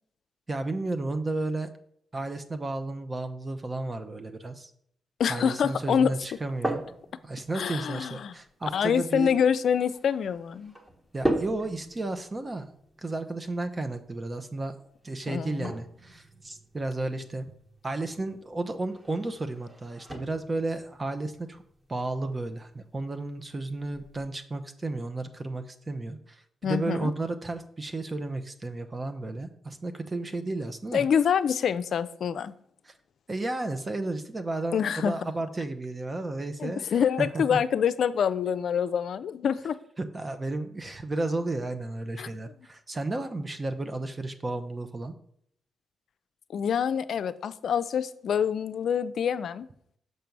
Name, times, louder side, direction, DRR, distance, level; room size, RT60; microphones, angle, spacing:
voice 1, 0.5-1.7 2.1-4.7 5.3-6.8 7.2-9.3 11.1-12.7 13.0-14.8 15.0-17.5 17.8-21.6 21.9-31.1 32.8-32.9 33.3-37.6 40.0-45.1, right 2 dB, 30° right, 0.7 m, -33 dB
voice 2, 5.2-6.1 7.5-8.3 8.7-10.8 15.3-15.7 26.6-27.1 30.9-32.5 34.7-35.2 36.6-39.8 42.2-42.3 46.5-49.7, left 7 dB, 70° left, 0.4 m, -26 dB
Baldwin Upright Piano Lid Open Close, 6.2-24.3, right 1 dB, 15° right, 1.4 m, -39 dB
6.7 x 4.6 x 5.3 m
cardioid pair, 75°, 0 cm